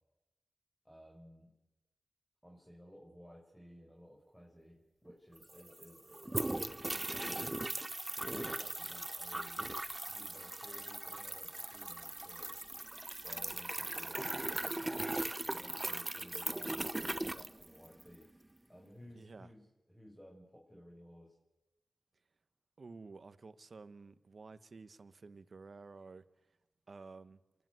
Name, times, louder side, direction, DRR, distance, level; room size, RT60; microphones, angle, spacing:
voice 1, 0.8-1.5 2.4-6.1 6.3-7.6 8.2-9.7 10.1-12.6 13.2-15.0 15.5-18.3 18.7-21.4, equal, 5° left, 5.4 m, -57 dB
sound 1, 5.1-5.2 5.4-18.2, right 1 dB, 25° right, 0.8 m, -39 dB
voice 2, 19.2-19.5 22.8-26.5 26.9-27.4, right 4 dB, 65° right, 1.0 m, -52 dB
28.0 x 10.5 x 9.5 m
cardioid pair, 50°, 0 cm